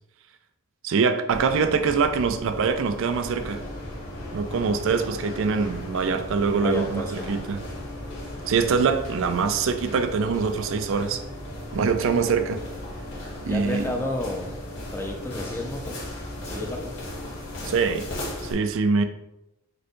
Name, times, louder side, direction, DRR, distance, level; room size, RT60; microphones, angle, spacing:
voice 1, 0.8-3.6 4.3-7.6 8.5-11.2 11.7-12.6 13.4-13.9 17.6-18.1 18.4-19.0, right 5 dB, 60° right, 8 dB, 0.4 m, -24 dB
sound 1, 1.3-18.5, left 1 dB, 60° left, 1.6 m, -36 dB
voice 2, 4.5-4.8 6.6-7.3 13.5-14.5 14.9-16.0 16.4-17.0, left 2 dB, 10° left, 2 dB, 0.5 m, -31 dB
5.0 x 2.3 x 4.4 m, 0.90 s
head